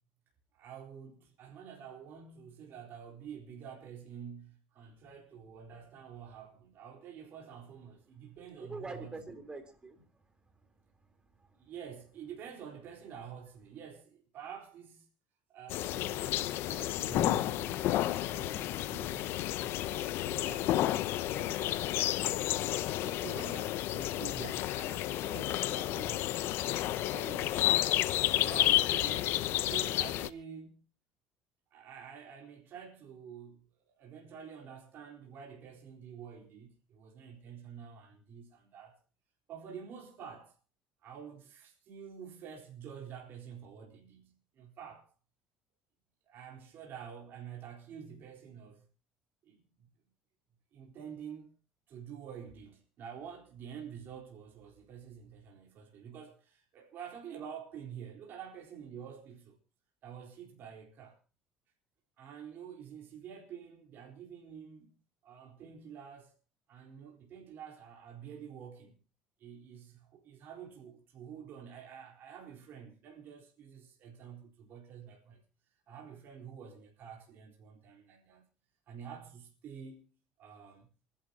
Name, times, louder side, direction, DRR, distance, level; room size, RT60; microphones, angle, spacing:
voice 1, 0.5-9.1 11.6-15.1 15.5-26.5 26.9-27.9 28.4-29.3 29.7-30.8 31.7-39.0 39.5-40.6 41.0-45.1 46.2-48.9 49.4-49.9 50.7-51.5 51.9-59.6 60.0-61.2 62.2-64.9 65.2-66.3 66.7-69.0 69.4-75.4 75.9-78.5 78.9-80.1 80.4-80.9, right 7 dB, 60° right, 4.1 m, -48 dB
voice 2, 8.6-10.7 11.0-11.6, right 3 dB, 20° right, 3.7 m, -46 dB
sound 1, 15.7-30.3, left 14 dB, 70° left, 0.8 m, -31 dB
28.5 x 11.5 x 2.9 m
supercardioid pair, 80°, 4 cm